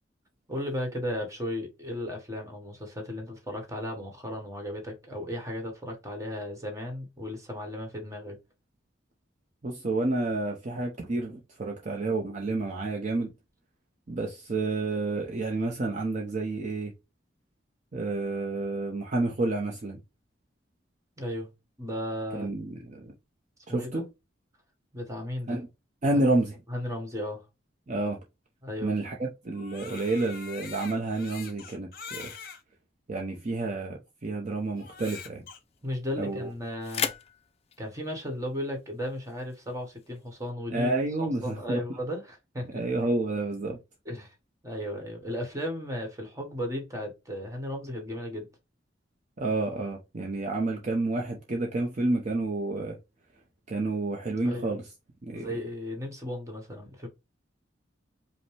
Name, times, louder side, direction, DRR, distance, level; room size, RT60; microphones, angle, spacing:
voice 1, 0.5-8.4 21.2-21.5 21.8-22.5 23.7-24.0 24.9-25.6 26.7-27.4 28.6-28.9 35.8-37.1 37.8-40.9 41.2-42.8 44.0-44.3 44.6-48.5 54.4-54.8 55.3-57.1, left 1 dB, 20° right, 1.3 m, -35 dB
voice 2, 9.6-13.3 14.1-16.9 17.9-20.0 22.3-23.1 23.7-24.0 25.5-25.7 26.0-26.6 27.9-28.2 28.8-32.3 33.1-35.4 36.2-36.5 40.7-41.8 42.7-43.8 49.4-53.0 53.7-54.9 55.2-55.5, right 2 dB, 40° right, 0.7 m, -29 dB
Crying sobbing, 29.5-32.6 33.3-33.4 34.8-35.6, left 6 dB, 55° left, 0.9 m, -43 dB
sound 1, 34.6-40.5, left 7 dB, 35° left, 0.4 m, -40 dB
5.1 x 2.1 x 3.2 m
head